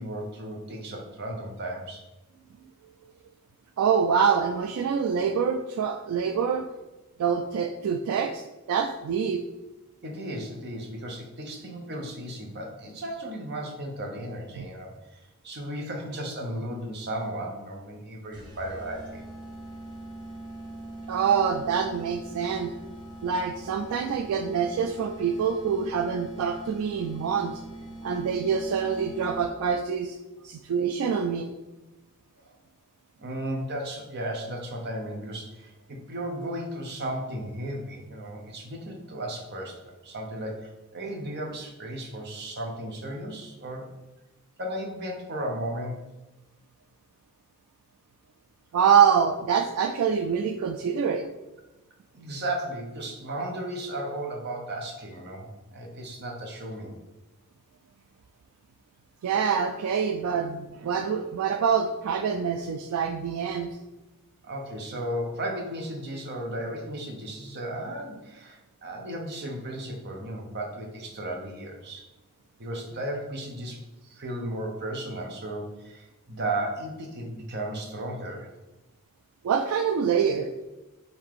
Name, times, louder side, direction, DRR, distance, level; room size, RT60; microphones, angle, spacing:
voice 1, 0.0-2.0 10.0-19.2 32.5-32.6 33.2-43.9 44.6-46.0 52.1-57.0 64.4-72.1 72.6-78.5, right 1 dB, 50° right, 1 dB, 0.8 m, -35 dB
voice 2, 3.8-6.7 7.2-9.4 14.6-14.7 21.1-22.7 23.2-27.6 28.0-30.2 30.4-31.5 48.7-51.3 59.2-63.7 79.4-80.5, right 7 dB, 75° right, 5 dB, 0.3 m, -25 dB
sound 1, 18.3-29.7, right 1 dB, 20° right, 0.9 m, -42 dB
3.7 x 2.7 x 4.7 m, 1.0 s
head